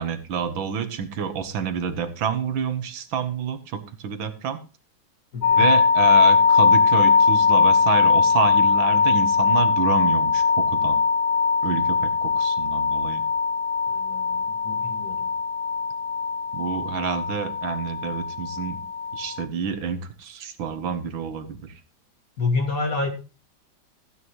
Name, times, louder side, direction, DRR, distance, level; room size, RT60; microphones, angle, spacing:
voice 1, 0.0-4.6 5.6-11.0 11.6-13.2 16.5-18.8 19.1-21.7, right 7 dB, 80° right, 10 dB, 2.0 m, -28 dB
voice 2, 5.3-5.7 13.9-15.3 22.4-23.1, left 3 dB, 45° left, 1 dB, 2.3 m, -28 dB
sound 1, 5.4-19.4, left 5 dB, 85° left, 1.5 m, -20 dB
14.5 x 9.9 x 3.1 m, 0.33 s
omnidirectional pair, 2.1 m